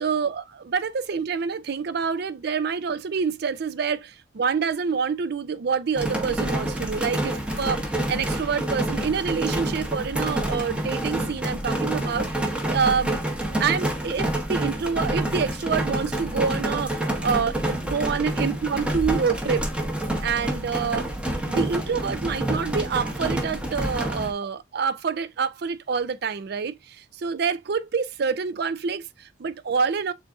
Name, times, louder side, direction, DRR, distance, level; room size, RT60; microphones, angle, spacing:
voice 1, 0.0-7.8 8.1-13.1 13.6-19.7 20.2-21.1 21.4-30.1, right 6 dB, 60° right, 0.4 m, -27 dB
sound 1, 6.0-24.3, right 1 dB, 5° right, 0.9 m, -28 dB
7.2 x 2.5 x 2.4 m
head